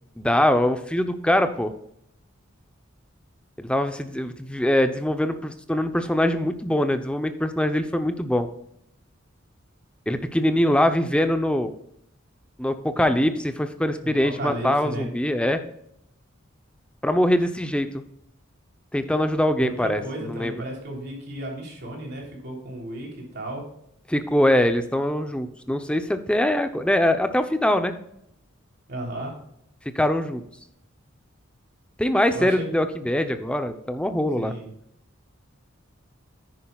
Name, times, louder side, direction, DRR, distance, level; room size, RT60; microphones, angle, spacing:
voice 1, 0.2-1.7 3.6-8.5 10.1-11.7 12.6-15.6 17.0-18.0 18.9-20.6 24.1-28.0 29.9-30.4 32.0-34.5, left 1 dB, 5° left, 8 dB, 0.7 m, -23 dB
voice 2, 14.0-15.1 19.6-23.6 28.9-29.3 32.3-32.8 34.4-34.7, right 1 dB, 55° right, -1 dB, 3.5 m, -34 dB
10.0 x 9.9 x 2.4 m, 0.73 s
head